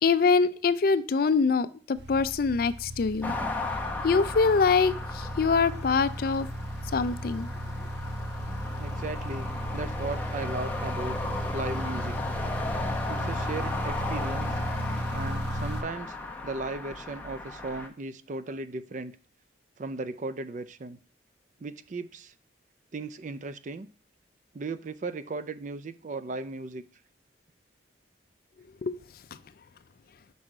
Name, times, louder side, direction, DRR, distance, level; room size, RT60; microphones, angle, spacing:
voice 1, 0.0-3.4 4.0-6.5 6.9-7.5 28.8-29.0, left 4 dB, 50° left, 0.4 m, -24 dB
sound 1, 2.0-15.8, equal, 60° right, 0.9 m, -35 dB
sound 2, 3.2-17.9, left 2 dB, 10° left, 0.8 m, -36 dB
voice 2, 8.8-11.2 11.5-12.2 13.1-14.6 15.1-16.2 16.4-19.2 19.8-21.0 21.6-22.3 22.9-23.9 24.5-26.8, right 3 dB, 40° right, 0.4 m, -36 dB
6.2 x 5.4 x 4.9 m
head